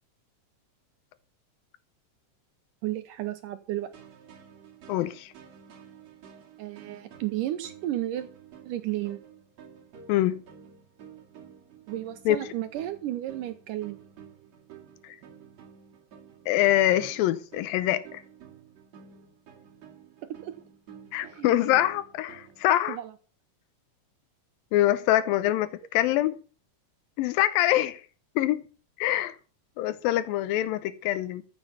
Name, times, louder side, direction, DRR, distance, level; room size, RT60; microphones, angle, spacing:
voice 1, 2.8-3.9 6.6-8.3 8.6-9.2 11.9-14.0 20.2-20.5 21.3-21.8 22.9-23.1, right 14 dB, 75° right, 2.3 m, -33 dB
Progressive chords lead, 3.8-22.7, right 8 dB, 50° right, 3.4 m, -51 dB
voice 2, 4.9-5.3 10.1-10.4 12.3-12.4 15.0-15.2 16.5-18.2 21.1-23.0 24.7-26.4 27.2-28.0 28.4-28.6 29.0-29.4 29.8-31.4, left 14 dB, 90° left, 2.5 m, -24 dB
14.0 x 7.1 x 6.8 m
omnidirectional pair, 4.0 m